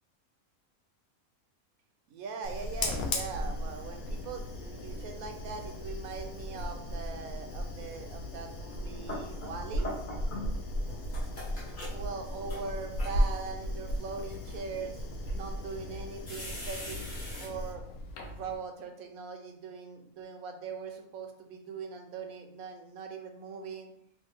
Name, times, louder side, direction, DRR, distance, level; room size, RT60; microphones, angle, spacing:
voice 1, 2.1-9.9 11.9-15.0 15.3-17.1 17.4-17.8 18.2-23.9, right 5 dB, 80° right, 4 dB, 1.0 m, -41 dB
Fire, 2.4-18.6, equal, 85° left, 1.1 m, -36 dB
sound 1, 8.7-10.6 10.9-13.5 14.1-14.6 15.3-15.4 16.3-17.5, left 1 dB, 40° left, 1.0 m, -42 dB
3.3 x 2.4 x 3.5 m, 0.71 s
omnidirectional pair, 1.5 m